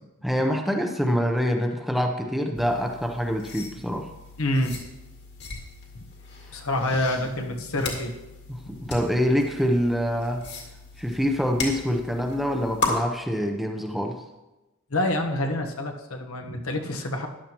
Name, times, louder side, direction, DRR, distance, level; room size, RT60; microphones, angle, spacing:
voice 1, 0.2-4.1 8.5-10.5 11.0-14.2, equal, ahead, 3 dB, 0.7 m, -25 dB
sound 1, 2.5-12.9, left 3 dB, 50° left, 2.1 m, -37 dB
voice 2, 4.4-4.8 6.5-8.1 8.7-8.8 14.9-17.3, left 1 dB, 80° left, 3 dB, 1.2 m, -27 dB
14.0 x 11.0 x 3.0 m, 1.0 s
head